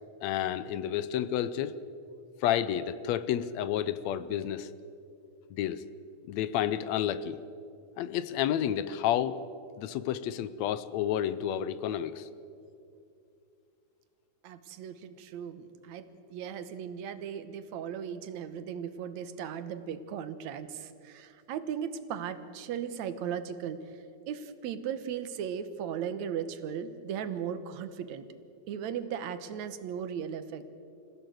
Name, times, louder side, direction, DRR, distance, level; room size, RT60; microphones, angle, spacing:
voice 1, 0.2-1.8 2.4-4.7 5.5-5.8 6.3-7.4 8.0-9.4 9.8-12.3, left 10 dB, 75° left, 15 dB, 1.8 m, -30 dB
voice 2, 14.4-16.1 16.3-28.3 28.7-30.6, right 8 dB, 70° right, 12 dB, 2.3 m, -37 dB
26.0 x 16.0 x 7.9 m, 2.6 s
omnidirectional pair, 3.5 m